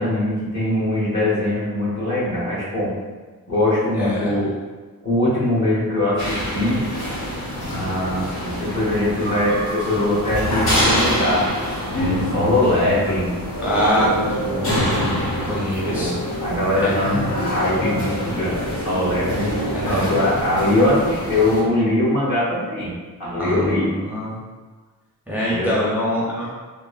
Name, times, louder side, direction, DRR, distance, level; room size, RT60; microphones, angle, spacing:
voice 1, 0.0-2.9 3.5-4.5 5.0-6.8 7.6-11.5 11.9-13.3 14.5-14.9 15.8-19.5 19.9-22.9 23.2-23.9 25.5-25.8, left 1 dB, 45° left, -8 dB, 1.3 m, -22 dB
voice 2, 4.0-4.3 13.6-15.2 15.5-16.1 16.8-16.9 19.7-20.1 23.3-23.8 24.0-24.3 25.3-26.5, equal, 5° right, -7 dB, 0.5 m, -24 dB
sound 1, 6.2-21.6, equal, 75° left, 1.1 m, -25 dB
3.3 x 2.1 x 2.4 m, 1.4 s
wide cardioid pair, 80°, 37 cm